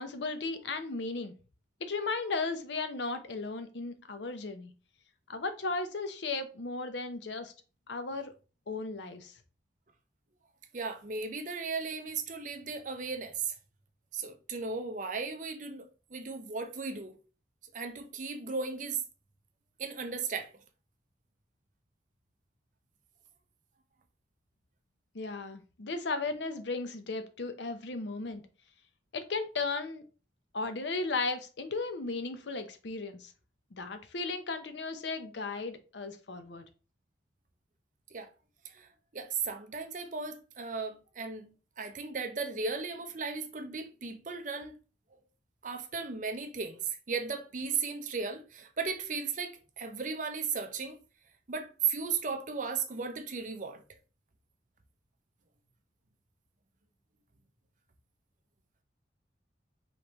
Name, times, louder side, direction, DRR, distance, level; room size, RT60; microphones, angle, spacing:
voice 1, 0.0-1.3 1.8-4.7 5.3-7.5 7.9-8.3 8.7-9.3 25.1-28.4 29.1-30.0 30.5-33.3 33.7-36.7, left 3 dB, 75° left, 0.7 m, -35 dB
voice 2, 10.7-13.5 14.1-17.1 17.7-19.0 19.8-20.5 38.1-38.3 38.6-44.8 45.6-46.8 47.1-51.0 51.5-53.8, right 5 dB, 45° right, 0.6 m, -36 dB
5.1 x 3.2 x 2.9 m
head